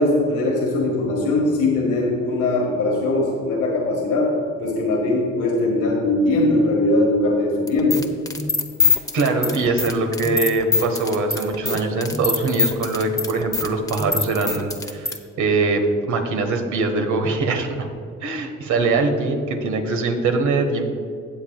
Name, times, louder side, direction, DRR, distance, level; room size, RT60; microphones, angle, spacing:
voice 1, 0.0-4.3 4.6-8.0, left 2 dB, 80° left, -2 dB, 1.8 m, -20 dB
sound 1, 7.7-15.2, left 4 dB, 10° left, 0.9 m, -23 dB
voice 2, 9.1-17.9 18.2-20.9, right 3 dB, 75° right, 5 dB, 1.4 m, -22 dB
17.5 x 7.3 x 2.4 m, 2.3 s
cardioid pair, 90°, 30 cm